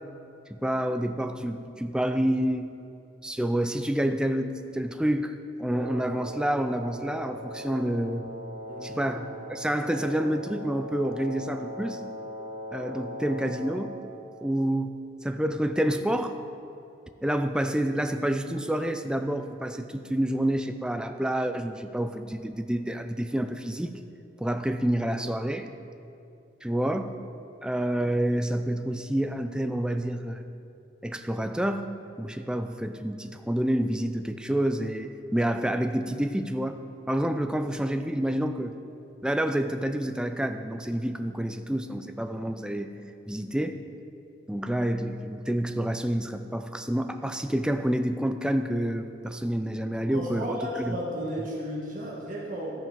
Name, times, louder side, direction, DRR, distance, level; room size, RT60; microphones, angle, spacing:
voice 1, 0.5-2.7 3.2-8.3 8.8-12.0 12.7-14.0 14.4-16.4 17.2-24.0 24.4-25.7 26.6-27.1 27.6-30.4 31.0-31.9 32.2-36.8 37.1-38.7 39.2-43.0 43.3-43.8 44.5-51.0, right 1 dB, 5° right, 8 dB, 0.4 m, -28 dB
Wind instrument woodwind instrument, 5.7-14.0, equal, 30° left, 2.0 m, -39 dB
voice 2, 8.7-9.1 50.1-52.8, equal, 45° right, -4 dB, 1.6 m, -34 dB
14.0 x 5.7 x 5.3 m, 2.7 s
head